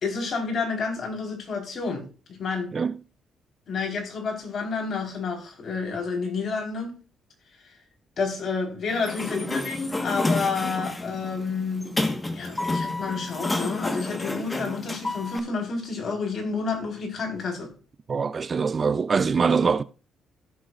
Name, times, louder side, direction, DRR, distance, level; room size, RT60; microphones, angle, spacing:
voice 1, 0.0-2.7 3.7-6.9 8.2-11.9 12.3-17.7, left 4 dB, 50° left, 4.5 m, -30 dB
Sliding door, 8.9-15.4, left 2 dB, 15° left, 1.6 m, -29 dB
voice 2, 18.1-19.8, right 5 dB, 40° right, 0.6 m, -23 dB
16.5 x 7.0 x 2.6 m
cardioid pair, 90°, 0 cm